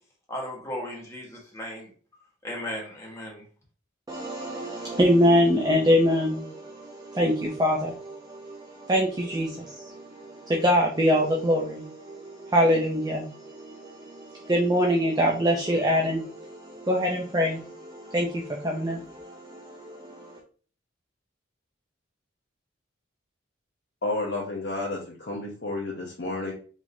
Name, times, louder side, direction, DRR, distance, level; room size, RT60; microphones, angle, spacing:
voice 1, 0.3-1.9 2.4-3.4, left 1 dB, 15° left, -3 dB, 1.6 m, -36 dB
voice 2, 4.1-20.4, equal, 20° right, 0 dB, 0.5 m, -25 dB
voice 3, 24.0-26.5, left 2 dB, 60° left, -3 dB, 0.9 m, -31 dB
4.9 x 3.7 x 2.7 m, 0.40 s
head